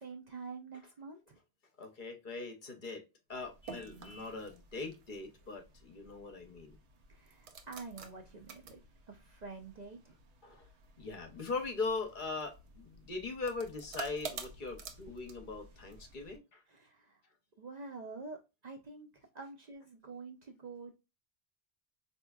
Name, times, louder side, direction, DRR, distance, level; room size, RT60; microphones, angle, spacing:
voice 1, 0.0-1.4 7.1-10.2 16.7-17.2 17.6-20.9, right 4 dB, 50° right, 0.6 m, -47 dB
voice 2, 1.8-3.0 3.3-6.8 10.4-10.7 11.0-16.6, left 3 dB, 55° left, 0.8 m, -40 dB
sound 1, 3.3-16.4, right 4 dB, 85° right, 1.0 m, -51 dB
Vehicle horn car horn honking, 3.6-4.4, left 1 dB, 25° left, 0.4 m, -56 dB
4.3 x 2.8 x 2.2 m
omnidirectional pair, 1.1 m